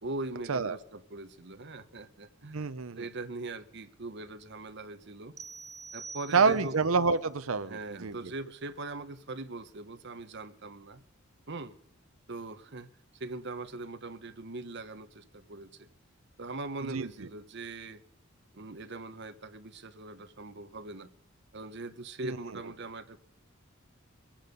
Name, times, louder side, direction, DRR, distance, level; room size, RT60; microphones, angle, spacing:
voice 1, 0.0-5.3 5.9-6.8 7.6-11.0 11.5-11.7 12.3-12.9 13.2-15.9 16.4-18.0 18.5-21.1 21.5-23.2, right 2 dB, 55° right, 1.1 m, -41 dB
voice 2, 2.5-3.1 6.3-8.3 16.9-17.1 22.2-22.4, right 4 dB, 75° right, 0.7 m, -27 dB
sound 1, 5.4-6.9, right 4 dB, 15° right, 0.5 m, -46 dB
23.5 x 8.9 x 5.2 m
head